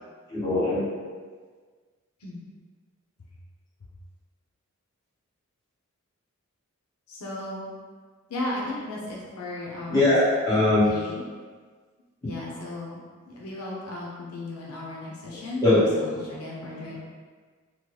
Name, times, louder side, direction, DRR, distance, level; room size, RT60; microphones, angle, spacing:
voice 1, 0.3-0.9 9.9-10.9 15.6-15.8, left 2 dB, 15° left, -12 dB, 1.1 m, -21 dB
voice 2, 7.1-7.7 8.3-10.4 10.7-11.2 12.2-13.0 13.3-17.0, left 1 dB, 90° left, -4 dB, 0.6 m, -35 dB
3.1 x 2.2 x 3.1 m, 1.5 s
head